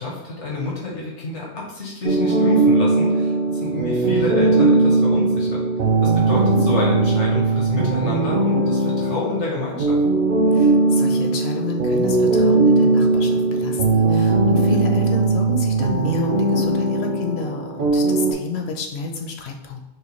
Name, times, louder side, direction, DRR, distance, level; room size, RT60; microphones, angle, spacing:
voice 1, 0.0-5.6 6.0-10.0, left 2 dB, 85° left, -4 dB, 1.5 m, -28 dB
sound 1, 2.0-18.3, right 3 dB, 55° right, 0.7 m, -19 dB
voice 2, 10.5-19.8, left 3 dB, 70° left, 3 dB, 0.9 m, -30 dB
6.2 x 2.2 x 3.1 m, 0.96 s
omnidirectional pair, 1.2 m